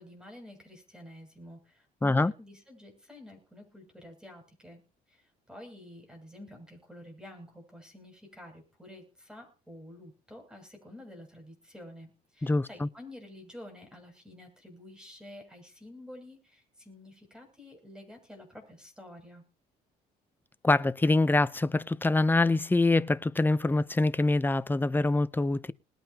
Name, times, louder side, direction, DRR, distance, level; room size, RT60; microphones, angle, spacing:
voice 1, 0.0-4.8 5.1-19.4, left 1 dB, 5° right, 7.1 m, -49 dB
voice 2, 2.0-2.3 12.4-12.9 20.6-25.7, left 2 dB, 10° left, 0.7 m, -25 dB
20.5 x 9.1 x 2.9 m
cardioid pair, 110°, 17 cm